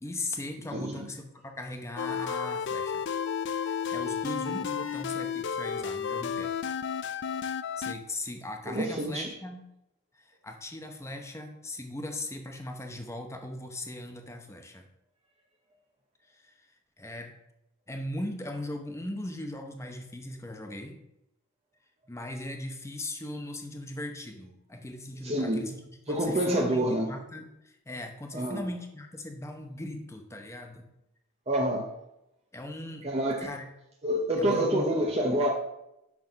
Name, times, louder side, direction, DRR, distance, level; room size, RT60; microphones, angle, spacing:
voice 1, 0.0-3.0 3.5-6.5 7.8-9.7 10.1-14.9 16.3-16.7 17.0-17.3 17.9-21.0 22.1-30.8 32.5-33.1 33.4-33.7 34.4-34.9, left 1 dB, 15° left, 4 dB, 0.9 m, -39 dB
voice 2, 0.7-1.0 4.8-4.9 8.7-9.3 25.2-25.7 26.1-27.1 28.3-28.6 31.5-31.9 33.0-33.5 34.0-35.5, right 1 dB, 30° right, -1 dB, 0.8 m, -27 dB
sound 1, 2.0-7.9, left 7 dB, 60° left, 0.4 m, -32 dB
6.2 x 6.0 x 5.2 m, 0.86 s
head